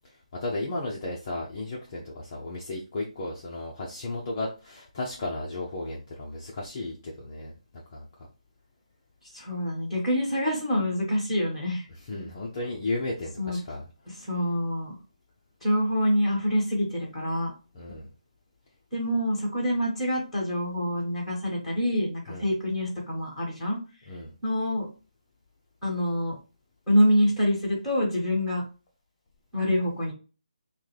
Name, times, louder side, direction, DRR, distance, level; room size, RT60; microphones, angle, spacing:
voice 1, 0.4-7.5 7.9-8.1 12.1-13.8 17.7-18.1 22.3-22.5 24.1-24.3, left 2 dB, 25° left, -3 dB, 0.6 m, -34 dB
voice 2, 9.3-11.9 13.4-13.6 14.1-15.0 15.6-17.5 18.9-23.8 24.4-24.9 25.8-26.3 26.9-28.6 29.5-30.1, equal, ahead, -6 dB, 1.5 m, -26 dB
6.0 x 2.2 x 3.2 m, 0.33 s
hypercardioid pair, 170°, 4 cm